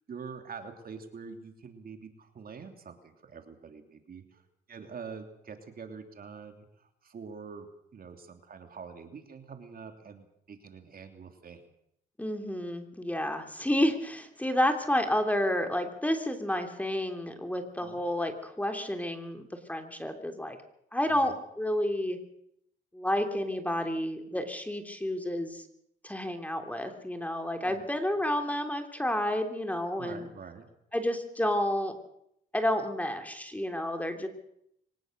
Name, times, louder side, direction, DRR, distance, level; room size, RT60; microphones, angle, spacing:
voice 1, 0.1-4.4 4.7-11.6 17.8-18.0 21.1-21.4 27.6-27.8 30.0-30.7, right 5 dB, 50° right, 6 dB, 3.1 m, -45 dB
voice 2, 12.2-20.6 20.9-22.2 22.9-25.6 26.0-30.3 30.9-31.9 32.5-34.3, left 1 dB, 5° left, 5 dB, 3.2 m, -30 dB
24.0 x 19.0 x 6.7 m, 0.74 s
cardioid pair, 90°, 20 cm